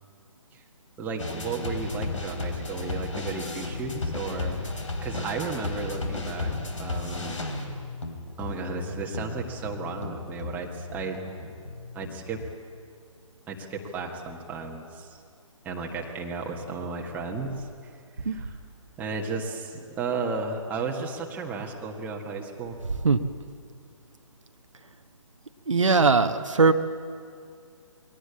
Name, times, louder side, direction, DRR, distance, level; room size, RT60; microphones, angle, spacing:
voice 1, 1.0-7.4 8.4-11.5 11.9-12.4 13.5-15.2 15.6-17.7 18.2-18.5 19.0-22.8, right 4 dB, 10° right, 0 dB, 1.6 m, -34 dB
sound 1, 1.2-12.5, left 3 dB, 70° left, 3.6 m, -34 dB
voice 2, 25.7-26.7, right 4 dB, 65° right, 7 dB, 1.1 m, -20 dB
22.0 x 18.0 x 8.5 m, 2.3 s
figure-of-eight pair, 140°, 17 cm